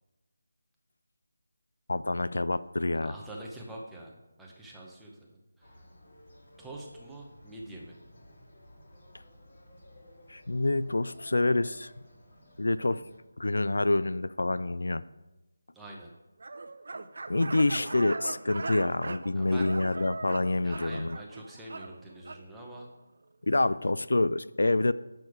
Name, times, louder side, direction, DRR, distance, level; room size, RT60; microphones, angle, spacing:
voice 1, 1.9-3.1 10.3-11.9 12.6-13.0 13.4-15.0 17.3-21.2 23.5-24.9, left 2 dB, 85° left, 16 dB, 0.3 m, -27 dB
voice 2, 3.0-5.8 6.6-8.0 15.7-16.1 19.4-19.7 20.6-22.9, right 1 dB, ahead, -4 dB, 0.7 m, -45 dB
sound 1, 5.6-13.2, equal, 50° left, 1.9 m, -55 dB
sound 2, 16.4-22.4, right 3 dB, 55° right, 0.4 m, -40 dB
6.8 x 6.0 x 4.8 m, 1.0 s
figure-of-eight pair, 175°, 0 cm